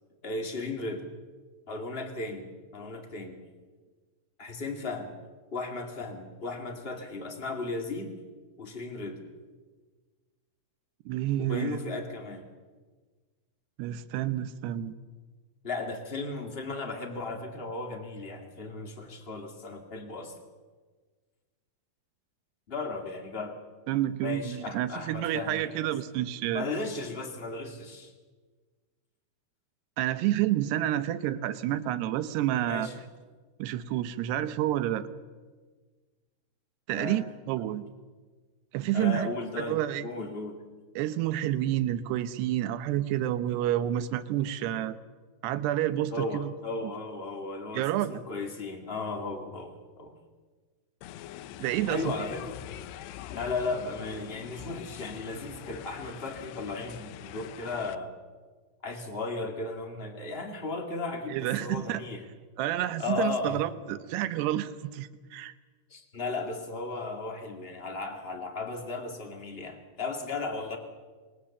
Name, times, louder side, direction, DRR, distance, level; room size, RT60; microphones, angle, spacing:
voice 1, 0.2-1.1 1.7-3.4 4.4-5.1 5.5-8.1 8.6-9.2 11.4-12.4 15.6-20.3 22.7-23.6 24.2-25.9 26.5-28.1 32.7-33.0 36.9-37.3 37.6-37.7 38.9-40.6 46.1-50.1 51.8-52.5 53.3-58.1 58.8-62.2 63.0-63.6 65.9-70.8, left 3 dB, 25° left, 3 dB, 1.3 m, -35 dB
voice 2, 11.1-11.8 13.8-14.9 23.9-26.6 30.0-32.9 33.6-35.1 36.9-37.8 38.7-39.3 39.7-40.0 41.0-45.0 45.4-46.5 47.7-48.2 51.6-52.1 61.3-62.0 62.6-65.5, right 13 dB, 80° right, 12 dB, 3.0 m, -29 dB
sound 1, 51.0-58.0, left 12 dB, 80° left, 2.9 m, -44 dB
26.0 x 20.5 x 7.2 m, 1.4 s
omnidirectional pair, 4.9 m